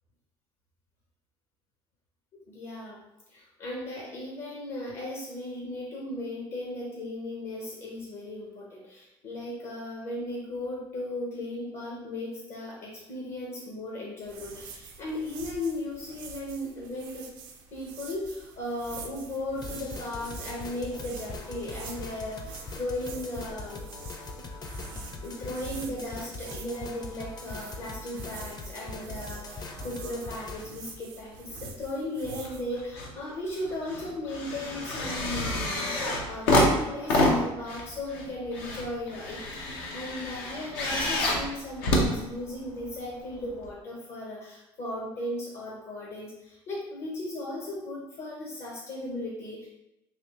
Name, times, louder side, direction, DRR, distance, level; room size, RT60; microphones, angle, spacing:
voice 1, 2.5-3.0 3.3-17.3 17.7-23.8 25.2-49.7, left 1 dB, 60° left, -3 dB, 0.9 m, -36 dB
sound 1, 14.2-32.6, right 4 dB, 80° right, 0.6 m, -46 dB
sound 2, 19.6-30.6, left 3 dB, 35° left, 0.6 m, -41 dB
sound 3, 32.4-33.1 33.5-42.9 43.7-43.8, left 1 dB, 85° left, 0.7 m, -28 dB
3.3 x 3.0 x 2.9 m, 0.92 s
supercardioid pair, 70°, 13 cm